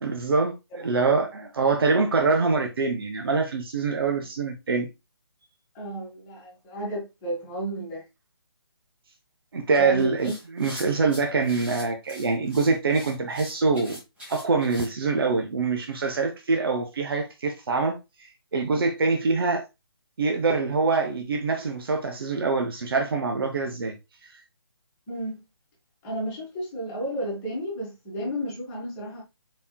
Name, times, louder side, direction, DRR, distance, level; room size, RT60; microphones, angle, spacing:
voice 1, 0.0-4.9 9.5-14.0 14.3-18.0 18.5-19.6 20.2-23.9, right 4 dB, 60° right, 0.7 m, -24 dB
voice 2, 5.7-8.0 9.8-10.3 25.1-25.4 26.0-29.2, right 1 dB, 20° left, 1.5 m, -32 dB
sound 1, 10.0-14.9, equal, 10° right, 1.4 m, -43 dB
4.2 x 3.5 x 2.2 m
figure-of-eight pair, 150°, 13 cm